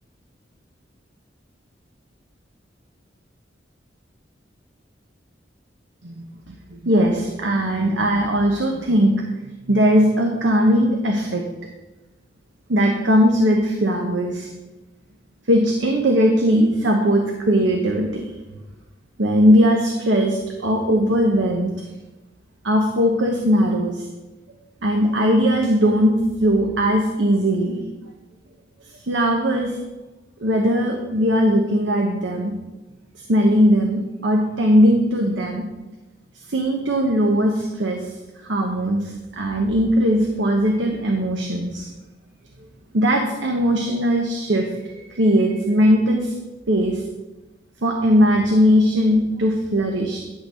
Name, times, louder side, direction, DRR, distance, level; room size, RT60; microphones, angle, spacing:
voice 1, 6.5-9.1 9.7-11.4 12.7-14.5 15.5-18.3 19.2-21.7 22.6-24.1 24.8-26.1 26.4-27.8 29.0-29.8 30.4-32.6 33.3-35.7 36.5-38.1 38.4-41.9 42.9-46.3 46.7-47.0 47.8-50.2, equal, 85° right, 2 dB, 1.0 m, -19 dB
11.0 x 4.0 x 6.7 m, 1.1 s
head